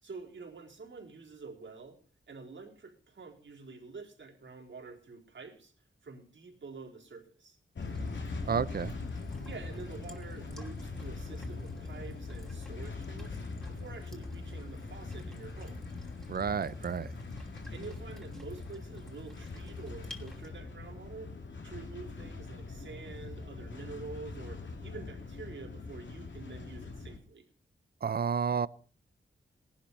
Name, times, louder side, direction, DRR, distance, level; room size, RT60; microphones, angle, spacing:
voice 1, 0.0-2.0 2.3-5.7 6.0-7.6 9.4-13.4 13.7-15.8 17.7-21.3 21.6-27.4, right 4 dB, 65° right, 4.1 m, -47 dB
sound 1, 7.8-27.2, left 3 dB, 65° left, 3.0 m, -42 dB
sound 2, 7.8-20.5, left 1 dB, 5° left, 2.7 m, -56 dB
voice 2, 8.5-8.9 16.3-17.1 28.0-28.7, right 6 dB, 50° right, 0.6 m, -30 dB
18.5 x 11.5 x 5.5 m
wide cardioid pair, 160°, 21 cm